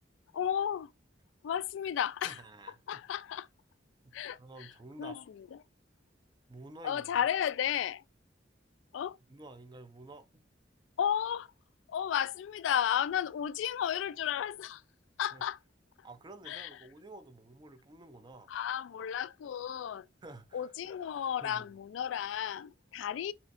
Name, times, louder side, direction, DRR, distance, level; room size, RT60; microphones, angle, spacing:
voice 1, 0.3-0.9 1.4-2.4 2.9-3.5 4.1-4.7 5.0-5.6 6.8-8.0 8.9-9.2 11.0-11.5 11.9-14.8 15.2-15.6 16.5-16.7 18.5-20.1 20.5-23.3, left 9 dB, 85° left, 0.3 m, -33 dB
voice 2, 2.2-3.0 4.0-5.2 6.5-7.1 9.3-10.4 15.3-15.4 16.0-18.5 20.2-20.7 21.4-21.7, right 2 dB, 25° right, 0.5 m, -50 dB
4.4 x 4.3 x 2.4 m
head